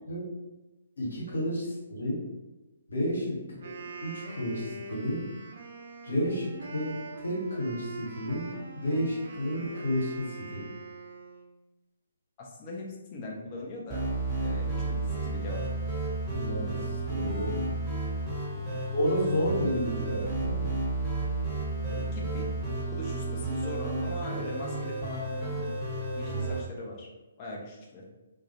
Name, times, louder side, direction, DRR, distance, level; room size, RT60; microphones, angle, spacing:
voice 1, 1.0-2.2 2.9-3.4 3.7-5.3 6.0-10.7 16.2-17.6 18.9-20.7, equal, 70° left, -5 dB, 1.1 m, -31 dB
voice 2, 3.3-3.7 12.4-14.0 14.4-15.6 18.5-18.8 21.8-22.5 22.9-25.7 26.1-27.1 27.4-28.0, left 2 dB, 30° left, -2 dB, 0.6 m, -41 dB
Wind instrument woodwind instrument, 3.5-11.5, right 3 dB, 55° right, 0.5 m, -43 dB
sound 1, 13.9-26.6, right 2 dB, 5° right, 0.9 m, -32 dB
2.3 x 2.1 x 2.8 m, 1.1 s
figure-of-eight pair, 135°, 0 cm